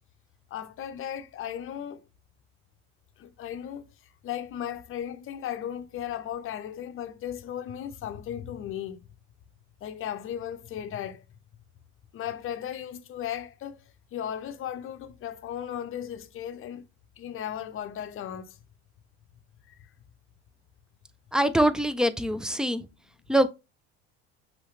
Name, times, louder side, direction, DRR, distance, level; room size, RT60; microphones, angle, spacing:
voice 1, 0.5-2.0 3.2-3.8 4.2-9.0 9.8-11.2 12.1-13.8 14.1-16.8 17.2-18.6 19.7-19.8, left 10 dB, 40° left, 0.6 m, -36 dB
voice 2, 21.3-22.9 23.3-23.5, right 1 dB, ahead, 0.4 m, -23 dB
5.5 x 2.8 x 3.1 m
supercardioid pair, 85°, 32 cm